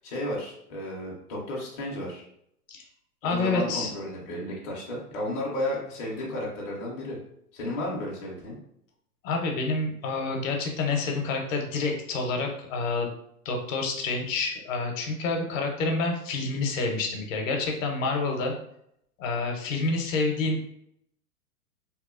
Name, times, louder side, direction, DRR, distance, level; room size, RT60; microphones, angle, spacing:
voice 1, 0.0-2.3 3.2-7.2 7.5-8.6, left 1 dB, 25° left, -5 dB, 0.4 m, -33 dB
voice 2, 3.2-3.9 9.2-13.1 13.4-18.5 19.2-20.6, left 3 dB, 55° left, 2 dB, 0.7 m, -28 dB
2.8 x 2.0 x 2.4 m, 0.72 s
hypercardioid pair, 135°, 46 cm